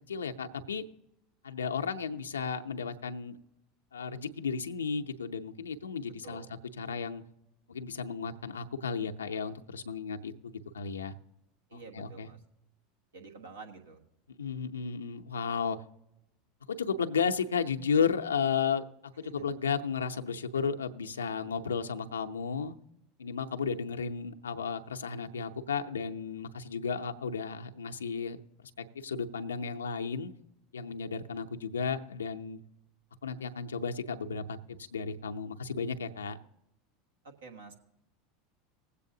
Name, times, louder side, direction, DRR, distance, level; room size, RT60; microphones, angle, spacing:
voice 1, 0.1-0.8 1.4-3.4 3.9-6.4 6.8-7.2 7.7-11.1 11.7-12.3 14.4-15.8 16.7-18.8 19.2-22.7 23.2-28.4 28.8-30.3 30.7-32.6 33.2-36.4, left 6 dB, 90° left, 5 dB, 0.6 m, -33 dB
voice 2, 11.7-12.4 13.1-14.0 19.2-19.6 37.2-37.7, right 4 dB, 85° right, 2 dB, 1.4 m, -49 dB
20.0 x 8.3 x 2.7 m, 0.87 s
hypercardioid pair, 85°, 0 cm